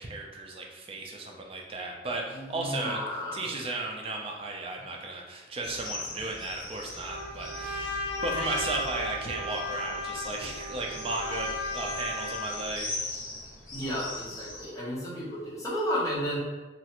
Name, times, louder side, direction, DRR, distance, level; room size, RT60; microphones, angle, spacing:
voice 1, 0.0-13.1, right 2 dB, 30° right, 0 dB, 0.4 m, -35 dB
voice 2, 2.3-3.5 13.7-16.4, equal, 20° left, -7 dB, 0.8 m, -32 dB
sound 1, 5.6-14.7, left 2 dB, 45° left, 1.0 m, -41 dB
Trumpet, 7.0-12.7, left 2 dB, 15° right, 1.0 m, -35 dB
3.0 x 2.4 x 2.9 m, 1.2 s
head